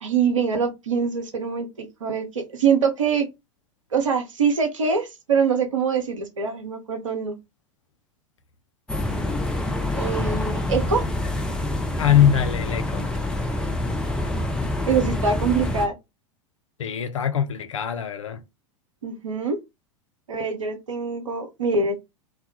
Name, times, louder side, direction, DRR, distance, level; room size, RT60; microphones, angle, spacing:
voice 1, 0.0-3.3 3.9-7.4 9.9-11.0 14.9-16.0 19.0-19.6 20.3-22.0, right 5 dB, 75° right, 0.6 m, -24 dB
sound 1, 8.9-15.9, left 1 dB, 5° left, 0.3 m, -26 dB
voice 2, 12.0-13.1 16.8-18.4, left 10 dB, 70° left, 0.4 m, -22 dB
2.2 x 2.0 x 2.7 m
figure-of-eight pair, 85°, 17 cm